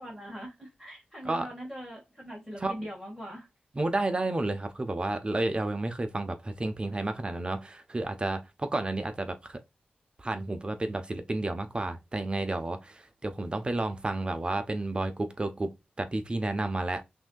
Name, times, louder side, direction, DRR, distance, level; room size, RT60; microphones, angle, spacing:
voice 1, 0.0-3.5, equal, 5° left, 1.7 m, -42 dB
voice 2, 3.8-9.6 10.2-15.7 16.0-17.0, right 2 dB, 30° right, 0.8 m, -31 dB
6.0 x 2.8 x 2.3 m
wide cardioid pair, 95°, 3 cm